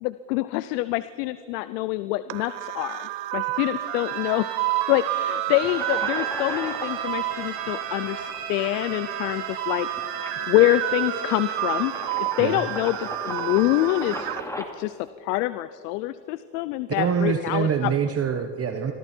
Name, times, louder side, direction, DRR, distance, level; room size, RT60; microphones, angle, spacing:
voice 1, 0.0-4.5 4.9-9.9 10.5-11.9 12.4-17.9, left 16 dB, 80° left, 15 dB, 0.8 m, -26 dB
sound 1, 2.3-14.4, right 15 dB, 65° right, 1.5 m, -30 dB
Bowed string instrument, 3.8-12.2, right 5 dB, 50° right, 7.8 m, -38 dB
sound 2, 5.6-14.6, left 1 dB, 5° left, 2.7 m, -39 dB
voice 2, 16.9-18.9, right 7 dB, 30° right, 6 dB, 1.3 m, -25 dB
27.0 x 23.5 x 4.5 m, 2.3 s
supercardioid pair, 110°, 47 cm